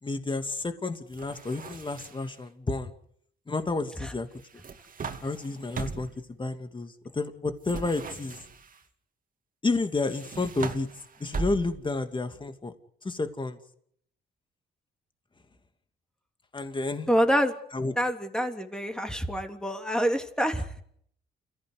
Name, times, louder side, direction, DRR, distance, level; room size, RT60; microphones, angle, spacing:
voice 1, 0.0-2.9 3.5-4.3 4.5-4.6 5.2-6.1 6.4-8.4 9.6-10.9 11.2-12.7 13.0-13.6 16.5-17.1 17.7-18.0, left 3 dB, 25° left, 8 dB, 2.7 m, -30 dB
sound 1, 1.1-2.4 4.4-6.2 7.6-8.8 10.0-12.0, right 4 dB, 45° right, 2.7 m, -39 dB
voice 2, 17.1-17.5 18.0-20.6, equal, 5° left, 5 dB, 3.2 m, -26 dB
29.0 x 15.5 x 9.7 m, 0.69 s
cardioid pair, 90°, 20 cm